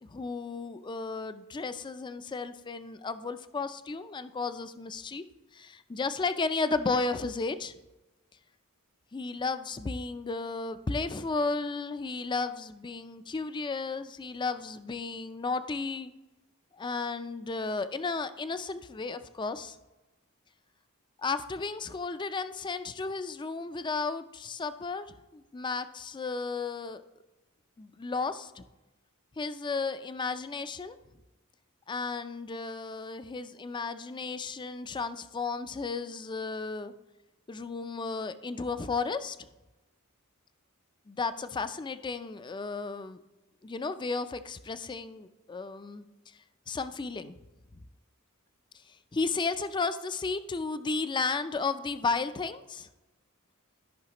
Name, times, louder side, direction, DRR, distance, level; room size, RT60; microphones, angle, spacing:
voice 1, 0.0-5.2 5.5-7.7 9.1-16.1 16.7-19.8 21.2-27.0 27.8-28.6 29.4-31.0 31.9-36.9 37.5-39.5 41.1-43.2 43.6-46.4 46.7-47.3 48.9-52.9, left 4 dB, 20° left, 11 dB, 0.4 m, -34 dB
13.5 x 5.6 x 2.9 m, 1.1 s
head